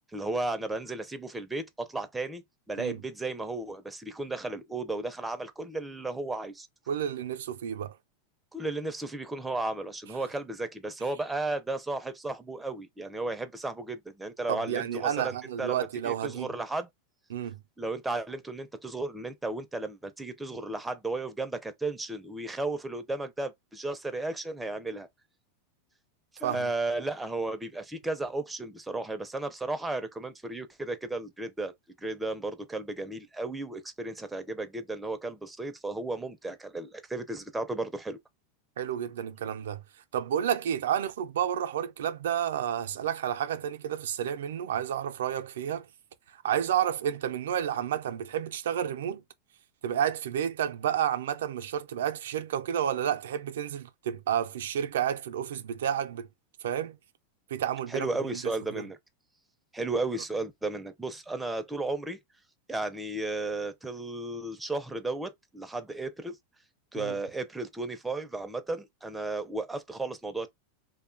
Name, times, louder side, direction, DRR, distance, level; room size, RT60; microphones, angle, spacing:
voice 1, 0.1-6.7 8.5-16.9 17.8-25.1 26.3-38.2 57.9-59.0 59.7-62.2 62.7-66.4 66.9-70.5, right 2 dB, 10° right, 0.4 m, -34 dB
voice 2, 6.9-8.0 14.5-16.5 17.3-17.6 26.4-26.7 38.8-39.8 40.1-45.9 46.3-49.2 49.8-56.3 56.6-57.0 57.5-58.8 67.0-67.2, right 9 dB, 85° right, 0.4 m, -30 dB
2.6 x 2.2 x 2.5 m
supercardioid pair, 125°, 0 cm